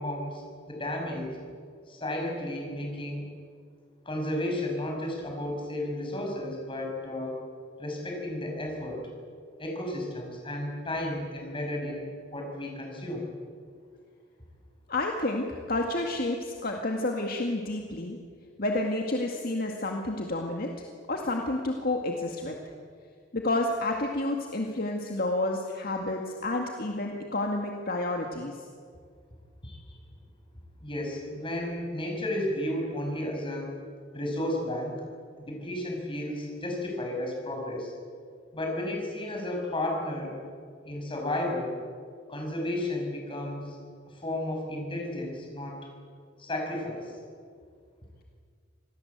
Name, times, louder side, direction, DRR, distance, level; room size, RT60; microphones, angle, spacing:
voice 1, 0.0-1.4 1.9-3.3 4.0-7.4 7.8-9.1 9.6-13.2 29.6-30.0 30.8-33.7 34.1-34.9 35.4-37.9 38.5-40.4 40.8-41.8 42.3-43.8 44.1-45.8 46.4-47.1, left 1 dB, 30° left, 1 dB, 6.2 m, -33 dB
voice 2, 14.9-18.2 18.6-20.7 21.1-22.6 23.3-28.6, left 2 dB, 55° left, 2 dB, 2.1 m, -30 dB
26.5 x 19.5 x 8.1 m, 2.1 s
head